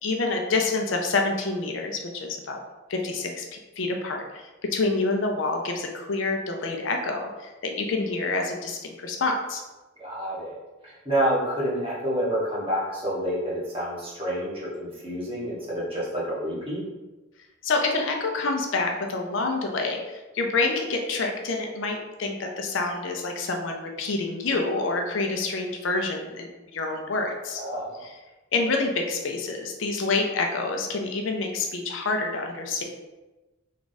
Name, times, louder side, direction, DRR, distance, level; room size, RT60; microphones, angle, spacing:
voice 1, 0.0-2.6 2.9-4.4 4.7-9.6 17.6-27.6 28.0-28.2 28.5-32.8, left 3 dB, 70° left, 2 dB, 0.5 m, -27 dB
voice 2, 10.0-16.8 27.6-28.0, equal, 30° right, -6 dB, 1.2 m, -28 dB
3.5 x 2.4 x 4.0 m, 1.1 s
head